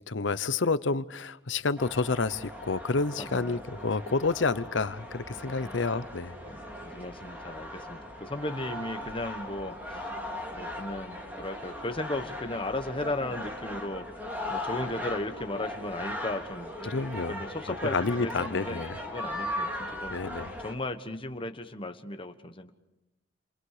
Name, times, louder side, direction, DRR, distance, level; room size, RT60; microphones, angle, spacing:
voice 1, 0.1-6.3 16.9-17.4 17.8-19.0 20.1-20.5, left 3 dB, 85° left, 15 dB, 0.9 m, -29 dB
sound 1, 1.8-20.7, left 1 dB, 10° right, 4.0 m, -38 dB
voice 2, 6.5-10.1 10.5-16.7 17.3-20.2 20.6-22.7, left 2 dB, 30° left, 7 dB, 1.3 m, -36 dB
28.5 x 27.5 x 5.0 m, 0.94 s
head